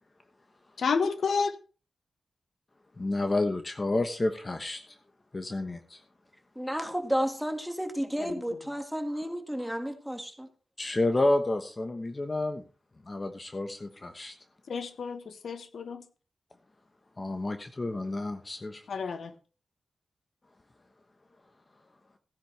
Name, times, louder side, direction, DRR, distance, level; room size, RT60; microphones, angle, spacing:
voice 1, 0.8-1.6 8.2-8.3 14.7-16.0 18.9-19.3, left 5 dB, 75° left, 12 dB, 1.1 m, -30 dB
voice 2, 3.0-4.8 5.3-6.0 10.8-12.6 13.1-14.3 17.2-18.8, left 2 dB, 35° left, 7 dB, 1.2 m, -30 dB
voice 3, 6.6-10.5, equal, ahead, 5 dB, 2.0 m, -32 dB
16.0 x 10.0 x 3.4 m, 0.36 s
cardioid pair, 50°, 0 cm